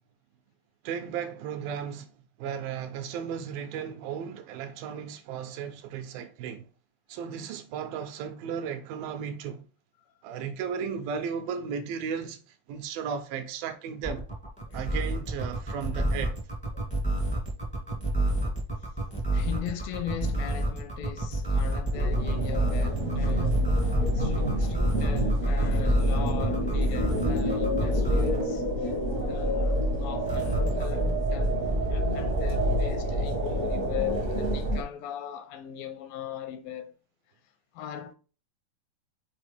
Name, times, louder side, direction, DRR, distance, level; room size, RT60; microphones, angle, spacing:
voice 1, 0.8-2.1 2.4-6.7 7.1-9.6 10.2-14.3 14.7-16.4 23.2-23.4, right 7 dB, 80° right, 2.4 m, -35 dB
sound 1, 14.0-28.4 30.2-30.8, right 1 dB, 10° left, 0.3 m, -28 dB
voice 2, 19.3-23.6 24.1-29.0 29.2-36.9 37.7-38.1, left 10 dB, 85° left, 2.3 m, -39 dB
sound 2, 21.9-34.8, equal, 65° right, 0.7 m, -27 dB
6.3 x 4.6 x 3.3 m
omnidirectional pair, 4.3 m